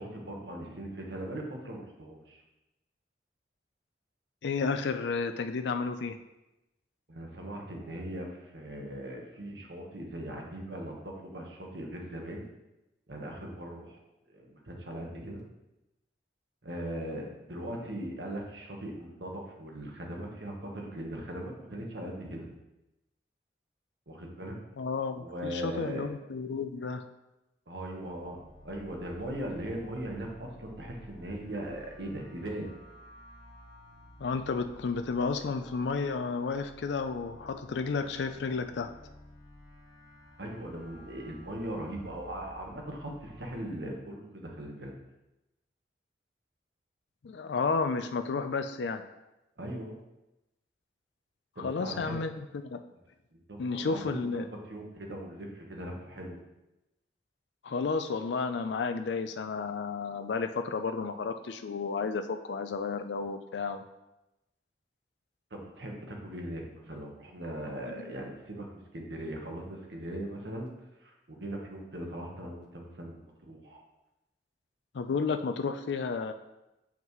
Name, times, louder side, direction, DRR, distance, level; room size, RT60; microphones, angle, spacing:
voice 1, 0.0-2.4 7.1-12.5 13.1-14.0 14.3-15.4 16.6-22.5 24.1-24.6 25.2-26.0 27.7-32.7 40.4-44.9 49.6-50.0 51.5-52.2 52.9-53.0 53.5-56.4 65.5-70.7 71.0-73.8, right 1 dB, 75° right, 0 dB, 1.3 m, -39 dB
voice 2, 4.4-6.2 24.8-27.0 34.2-38.9 47.2-49.0 51.6-52.8 53.6-54.5 57.6-63.8 74.9-76.3, left 4 dB, 75° left, 8 dB, 0.4 m, -32 dB
sound 1, 27.8-43.6, left 1 dB, 45° left, 1.9 m, -53 dB
7.1 x 5.8 x 3.1 m, 0.94 s
head